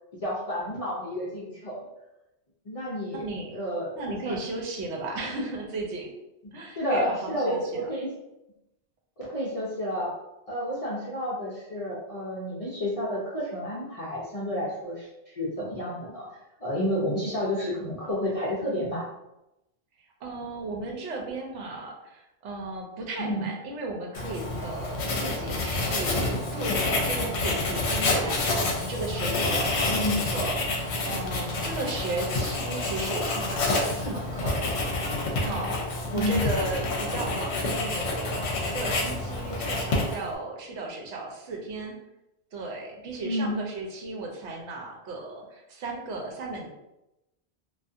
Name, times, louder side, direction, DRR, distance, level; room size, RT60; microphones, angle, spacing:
voice 1, 0.2-1.8 2.7-3.2 3.5-4.4 6.4-8.1 9.2-10.1 10.5-16.3 16.6-19.1 23.2-23.5 29.9-30.2 36.1-36.5 43.2-43.6, equal, 50° left, -7 dB, 0.4 m, -30 dB
voice 2, 3.1-3.5 3.9-6.1 6.5-7.9 20.2-28.5 28.8-34.6 35.4-41.9 42.5-46.7, right 2 dB, 80° right, 0 dB, 0.9 m, -35 dB
Writing, 24.1-40.4, left 2 dB, 70° left, 0.8 m, -28 dB
2.6 x 2.3 x 2.3 m, 0.92 s
omnidirectional pair, 1.2 m